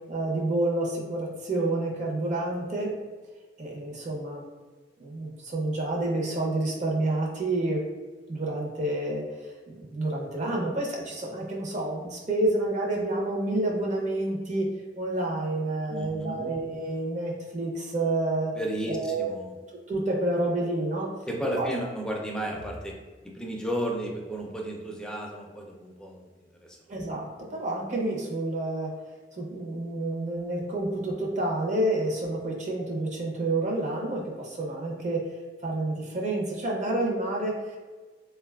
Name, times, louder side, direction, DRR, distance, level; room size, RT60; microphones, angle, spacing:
voice 1, 0.1-2.9 3.6-4.4 5.0-7.8 8.3-9.2 9.7-14.7 14.9-18.5 18.9-19.3 19.9-21.1 21.6-21.7 26.9-28.9 29.3-35.2 35.6-37.8, right 2 dB, 45° right, -1 dB, 0.6 m, -29 dB
voice 2, 15.9-16.5 18.5-19.6 21.3-22.9 23.2-26.2 26.6-26.8, right 1 dB, 5° left, 0 dB, 0.4 m, -33 dB
3.6 x 2.2 x 2.2 m, 1.3 s
head